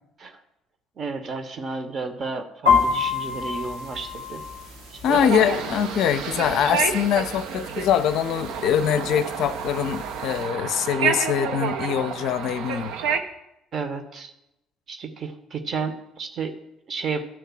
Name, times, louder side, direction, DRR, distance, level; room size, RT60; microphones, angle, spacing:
voice 1, 1.0-4.4 4.9-5.2 13.7-14.3 14.9-16.5 16.9-17.2, right 4 dB, 40° right, 8 dB, 1.0 m, -32 dB
sound 1, 2.7-10.5, left 5 dB, 80° right, 2.1 m, -29 dB
voice 2, 5.0-12.9, left 9 dB, 55° left, 11 dB, 0.5 m, -23 dB
sound 2, 5.1-13.2, right 6 dB, 60° right, 0.6 m, -29 dB
10.5 x 3.7 x 7.0 m, 0.86 s
figure-of-eight pair, 50°, 0 cm